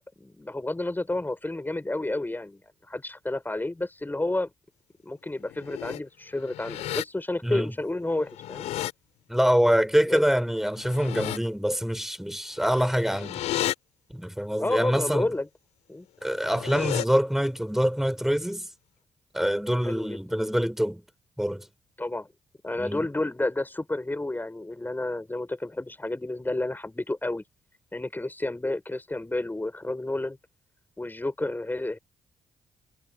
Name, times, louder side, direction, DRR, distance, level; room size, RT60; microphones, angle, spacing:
voice 1, 0.2-2.6 2.9-4.5 5.0-8.7 10.1-10.2 14.6-15.5 15.9-16.1 19.8-20.2 22.0-22.3 22.6-27.4 27.9-30.4 31.0-32.0, left 2 dB, 15° left, 7.2 m, -30 dB
sound 1, 5.4-6.0 6.4-7.0 8.2-8.9 10.7-11.4 12.6-13.7 16.3-17.0, left 14 dB, 75° left, 5.5 m, -33 dB
voice 2, 7.4-7.7 9.3-13.4 14.1-15.3 16.2-18.7 19.3-21.0 21.4-21.7 22.8-23.1, equal, 5° right, 5.6 m, -25 dB
hypercardioid pair, 45°, 12 cm